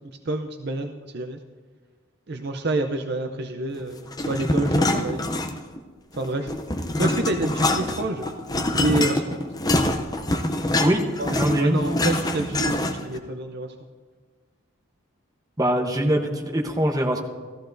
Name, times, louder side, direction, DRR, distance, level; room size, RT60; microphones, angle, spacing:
voice 1, 0.2-1.4 2.3-5.2 6.1-6.5 7.0-8.3 8.7-9.4 11.2-13.7, right 2 dB, 50° right, 6 dB, 0.5 m, -28 dB
sound 1, 4.1-5.8 6.1-13.2, left 1 dB, 20° left, 0.5 m, -25 dB
voice 2, 11.3-11.8 15.6-17.2, right 1 dB, 15° right, 1 dB, 0.9 m, -22 dB
14.5 x 14.5 x 2.6 m, 1.5 s
head